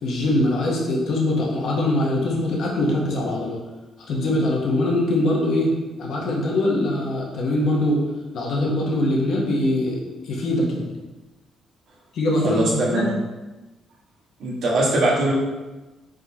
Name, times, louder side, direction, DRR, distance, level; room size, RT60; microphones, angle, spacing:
voice 1, 0.0-3.6 4.1-5.7 6.0-8.0 8.3-10.9 12.1-13.1, left 1 dB, 70° left, -2 dB, 1.0 m, -22 dB
voice 2, 12.4-13.1 14.4-15.3, right 1 dB, 75° right, -4 dB, 1.4 m, -21 dB
4.9 x 3.7 x 2.9 m, 1.2 s
cardioid pair, 90°, 0 cm